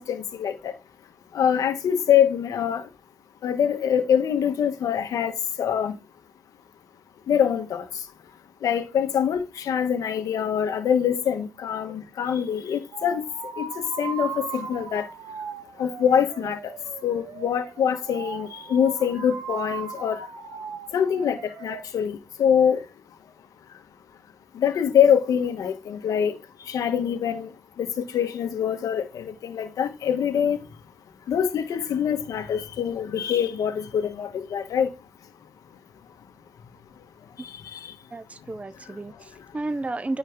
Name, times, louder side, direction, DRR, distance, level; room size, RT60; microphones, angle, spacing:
voice 1, 0.1-0.7 1.3-2.9 3.4-5.3 5.6-5.9 7.3-7.8 8.6-13.2 13.6-15.1 15.8-16.6 17.0-20.2 20.9-21.4 21.6-22.8 24.6-26.3 26.7-27.5 27.8-30.6 31.3-34.9 37.7-37.8, left 8 dB, 80° left, 1.4 m, -24 dB
sound 1, 12.9-21.8, right 6 dB, 80° right, 1.3 m, -38 dB
voice 2, 38.1-40.2, right 2 dB, 25° right, 0.6 m, -32 dB
9.5 x 4.7 x 3.6 m
supercardioid pair, 55°, 6 cm